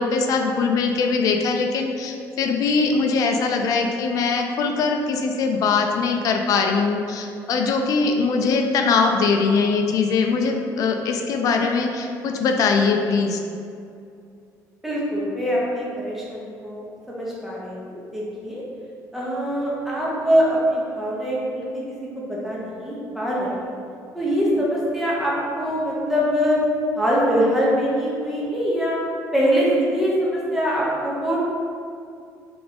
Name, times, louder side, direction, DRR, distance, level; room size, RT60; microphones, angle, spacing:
voice 1, 0.0-13.4, left 4 dB, 60° left, 3 dB, 0.5 m, -21 dB
voice 2, 14.8-18.6 19.1-21.8 22.2-23.6 24.1-26.6 27.0-29.0 29.3-31.4, equal, 5° right, -6 dB, 1.0 m, -23 dB
3.5 x 3.4 x 4.0 m, 2.4 s
cardioid pair, 130°, 7 cm